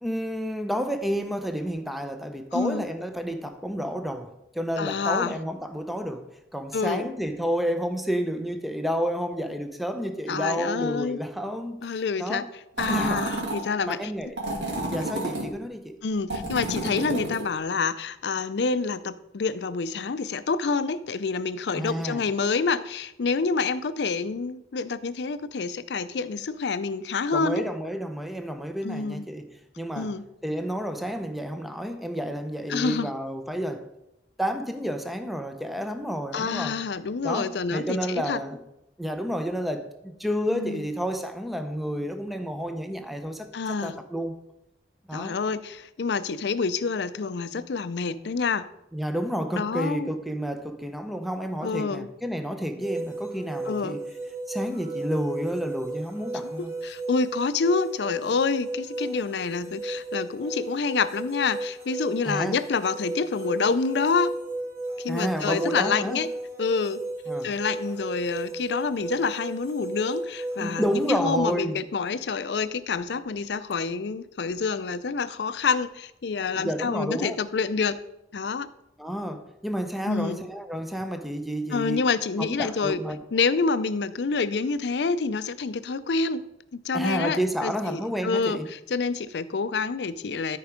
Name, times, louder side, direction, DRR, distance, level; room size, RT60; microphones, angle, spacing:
voice 1, 0.0-11.8 12.2-12.4 12.9-13.2 13.8-14.4 14.9-16.0 21.7-22.2 27.3-30.1 30.4-33.9 34.4-36.8 37.2-38.6 39.0-44.3 45.1-45.4 48.9-54.1 54.5-56.7 62.2-62.6 65.1-66.2 67.3-67.5 70.6-71.8 76.5-77.4 79.0-82.1 82.4-83.2 86.9-88.7, equal, ahead, 0.7 m, -30 dB
voice 2, 2.5-2.8 4.8-5.4 6.7-7.1 10.3-11.2 11.8-12.4 12.8-14.1 16.0-27.7 28.8-29.3 30.0-30.2 32.7-33.1 36.3-38.4 40.5-40.8 43.5-44.0 45.1-48.6 49.5-50.1 51.6-52.1 53.7-54.0 56.6-64.3 65.0-66.3 66.6-67.0 67.4-78.0 78.3-78.7 80.1-80.4 81.7-83.0 83.3-90.6, left 4 dB, 70° left, 0.5 m, -27 dB
sound 1, 12.8-13.6 14.4-15.5 16.3-17.5, right 2 dB, 80° right, 2.8 m, -30 dB
sound 2, 52.8-71.1, right 2 dB, 55° right, 3.0 m, -35 dB
13.0 x 4.6 x 5.0 m
head